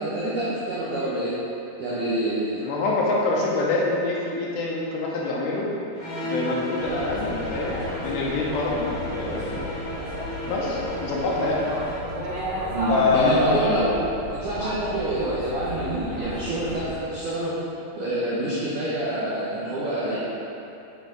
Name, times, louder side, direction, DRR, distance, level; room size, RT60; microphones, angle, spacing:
voice 1, 0.0-1.4 1.8-2.6 12.7-13.9 14.3-17.6 18.0-20.2, right 1 dB, 85° right, -8 dB, 1.8 m, -27 dB
voice 2, 2.6-5.7 6.2-9.6 10.5-11.7 12.9-13.7, left 3 dB, 75° left, -4 dB, 2.9 m, -25 dB
sound 1, 5.9-12.1, left 1 dB, 60° left, 2.2 m, -34 dB
sound 2, 6.8-17.0, equal, 55° right, 1.9 m, -33 dB
7.3 x 7.1 x 4.0 m, 2.8 s
omnidirectional pair, 5.3 m